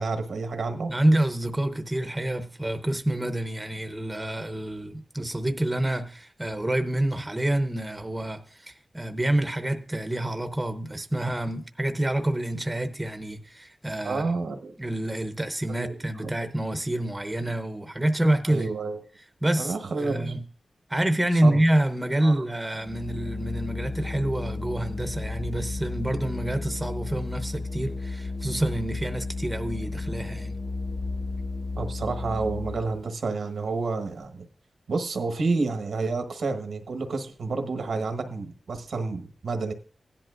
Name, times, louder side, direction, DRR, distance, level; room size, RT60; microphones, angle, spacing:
voice 1, 0.0-0.9 14.0-14.7 15.7-16.3 18.5-19.0 19.6-20.4 21.4-21.6 22.2-22.4 31.8-34.4 34.9-39.7, right 3 dB, 85° right, 1.2 m, -29 dB
voice 2, 0.9-14.3 14.8-18.7 19.4-20.4 20.9-30.6, right 1 dB, 15° right, 0.7 m, -27 dB
Organ, 22.7-33.0, left 3 dB, 50° left, 0.5 m, -33 dB
16.5 x 10.5 x 2.5 m
wide cardioid pair, 150°, 0 cm